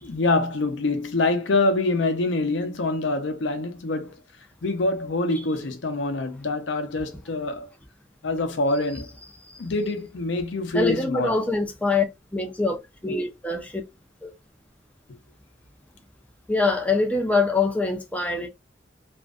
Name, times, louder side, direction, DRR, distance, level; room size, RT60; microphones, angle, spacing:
voice 1, 0.0-4.1 4.6-7.7 8.2-9.1 9.6-11.3, left 2 dB, 70° left, 0.6 m, -25 dB
voice 2, 10.7-12.0 12.3-13.8 14.2-14.3 16.5-18.5, left 3 dB, 5° left, 0.4 m, -24 dB
2.5 x 2.1 x 2.4 m
head